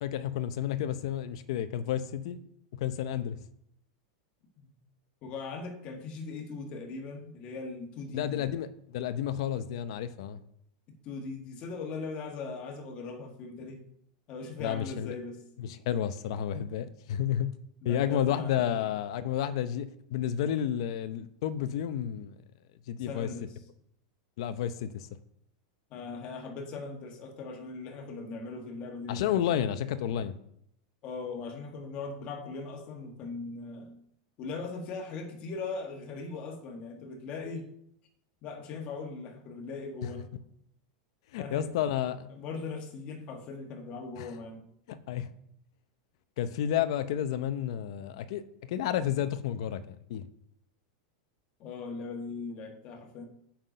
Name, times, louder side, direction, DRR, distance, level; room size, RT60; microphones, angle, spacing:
voice 1, 0.0-2.4 2.7-3.4 8.1-10.4 14.6-15.1 15.6-17.5 17.8-22.4 22.9-23.3 24.4-25.1 29.1-30.4 40.0-40.1 41.3-42.3 44.2-44.3 44.9-45.3 46.4-50.3, left 10 dB, 60° left, 0.7 m, -31 dB
voice 2, 5.2-8.4 11.0-13.8 14.3-15.4 17.8-18.9 23.1-23.5 25.9-29.7 31.0-33.9 34.4-37.7 38.4-40.3 41.4-41.7 42.3-44.6 51.6-53.2, left 4 dB, 30° left, 1.6 m, -39 dB
7.8 x 5.8 x 5.1 m
supercardioid pair, 165°, 3 cm